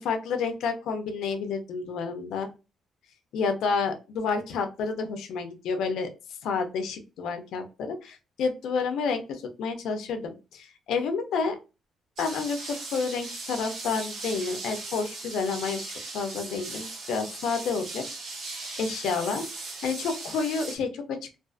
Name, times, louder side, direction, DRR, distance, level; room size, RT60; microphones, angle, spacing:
voice 1, 0.0-2.5 3.3-6.1 6.4-11.6 12.2-15.8 16.1-18.0 18.8-21.4, left 5 dB, 85° left, 6 dB, 0.4 m, -30 dB
sound 1, 12.2-20.8, right 3 dB, 55° right, 0.8 m, -38 dB
2.3 x 2.3 x 2.4 m, 0.30 s
cardioid pair, 160°, 0 cm